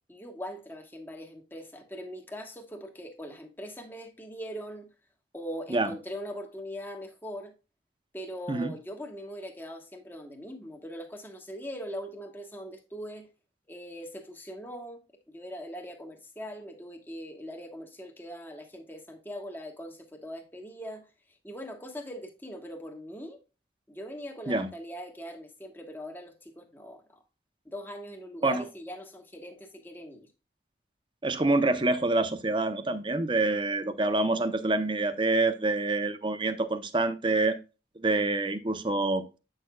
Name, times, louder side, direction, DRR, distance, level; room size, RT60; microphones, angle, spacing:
voice 1, 0.1-4.9 5.3-7.5 8.1-13.3 13.7-15.0 15.3-21.1 21.4-23.4 23.9-27.2 27.6-30.3, equal, 10° left, 1.3 m, -41 dB
voice 2, 31.2-37.6 38.0-39.2, right 2 dB, 25° right, 0.7 m, -26 dB
8.9 x 6.5 x 2.3 m
head